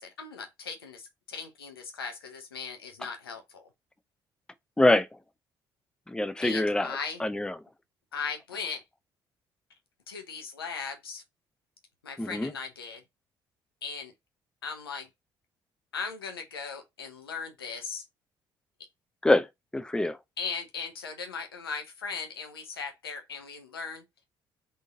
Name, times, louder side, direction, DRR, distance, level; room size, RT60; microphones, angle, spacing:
voice 1, 0.0-3.7 6.4-7.2 8.1-8.8 10.1-11.2 12.0-13.0 13.8-14.1 14.6-15.1 15.9-18.0 20.4-24.0, left 5 dB, 80° left, 0.7 m, -38 dB
voice 2, 6.1-7.6 12.2-12.5 19.2-19.5 19.7-20.2, left 1 dB, 5° left, 0.5 m, -25 dB
3.8 x 2.6 x 3.6 m
figure-of-eight pair, 45°, 12 cm